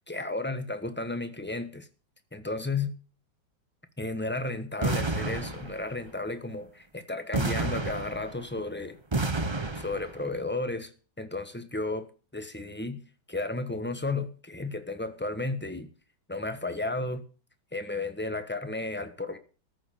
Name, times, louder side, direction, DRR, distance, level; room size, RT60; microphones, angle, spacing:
voice 1, 0.1-1.9 2.3-2.9 4.0-9.0 9.7-10.9 11.2-13.0 13.3-15.9 16.3-17.2 17.7-19.4, left 2 dB, 5° left, 0.9 m, -33 dB
sound 1, 4.8-6.1 7.3-8.6 9.1-10.2, right 2 dB, 25° right, 0.6 m, -30 dB
14.0 x 6.9 x 8.6 m
omnidirectional pair, 2.1 m